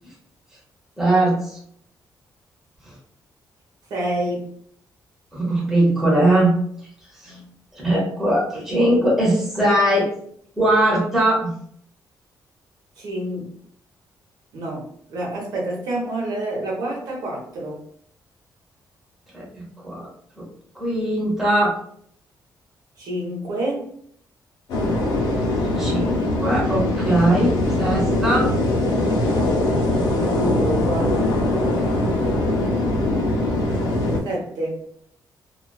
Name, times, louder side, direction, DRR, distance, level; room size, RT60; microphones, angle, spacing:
voice 1, 1.0-1.6 2.8-2.9 5.3-6.6 7.2-7.4 7.7-10.1 10.6-11.5 19.3-20.1 20.4-20.5 20.7-21.8 25.3-28.5, right 1 dB, 5° right, -7 dB, 1.0 m, -20 dB
voice 2, 3.9-4.5 7.3-7.5 13.0-13.5 14.5-17.8 23.0-23.9 30.2-31.2 31.8-32.4 32.7-32.8 34.2-34.8, right 1 dB, 70° right, -3 dB, 0.8 m, -28 dB
sound 1, 24.7-34.2, left 1 dB, 85° left, 0.7 m, -21 dB
2.3 x 2.3 x 2.3 m, 0.64 s
wide cardioid pair, 170°, 7 cm